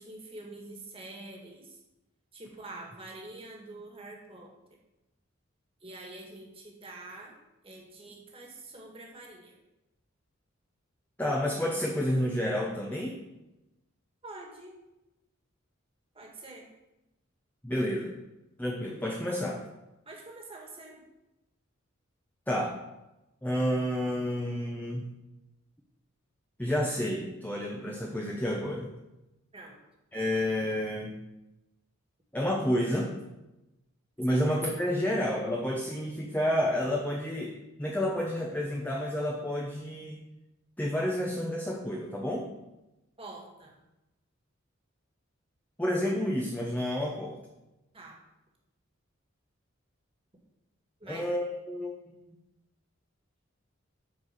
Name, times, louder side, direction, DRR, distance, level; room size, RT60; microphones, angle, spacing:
voice 1, 0.0-1.8 2.3-4.6 5.8-7.4 7.6-9.6 14.2-14.7 16.1-16.7 20.1-21.0 29.5-29.7 34.3-34.4 43.2-43.8 47.9-48.2 51.0-51.2, right 2 dB, 25° right, -1 dB, 1.9 m, -46 dB
voice 2, 11.2-13.2 17.6-18.1 18.6-19.6 22.5-22.8 23.4-25.1 26.6-28.9 30.1-31.1 32.3-33.1 34.2-37.5 37.8-40.2 40.8-42.5 45.8-47.3 51.1-52.1, equal, 10° left, -2 dB, 0.9 m, -30 dB
8.7 x 4.7 x 6.7 m, 0.97 s
head